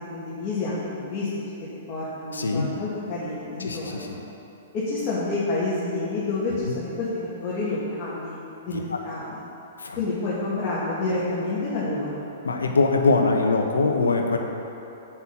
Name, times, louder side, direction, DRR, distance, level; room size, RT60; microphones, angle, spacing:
voice 1, 0.1-1.3 1.9-4.1 4.7-8.4 8.6-9.4 10.0-12.3, left 2 dB, 30° left, -9 dB, 2.5 m, -29 dB
voice 2, 2.3-2.7 3.6-4.1 6.6-6.7 8.9-9.0 9.8-10.0 12.4-14.4, left 3 dB, 80° left, 3 dB, 1.1 m, -22 dB
8.0 x 6.3 x 7.3 m, 3.0 s
figure-of-eight pair, 110°, 0 cm